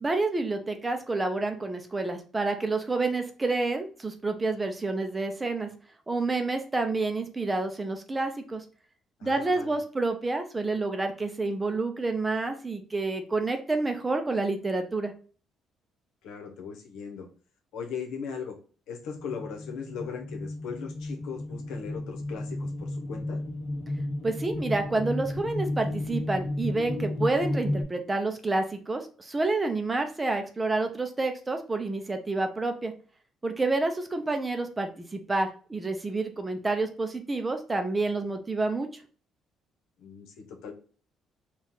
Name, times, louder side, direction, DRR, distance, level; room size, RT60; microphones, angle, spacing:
voice 1, 0.0-5.7 6.1-8.6 9.2-15.1 24.2-32.9 33.4-39.0, right 3 dB, 15° right, 6 dB, 0.5 m, -29 dB
voice 2, 9.2-9.8 16.2-17.3 17.7-18.6 18.9-23.4 40.0-40.7, left 6 dB, 90° left, 2 dB, 1.0 m, -38 dB
sound 1, 19.0-27.8, left 1 dB, 40° left, 1.3 m, -33 dB
4.4 x 2.4 x 3.7 m, 0.41 s
cardioid pair, 150°, 0 cm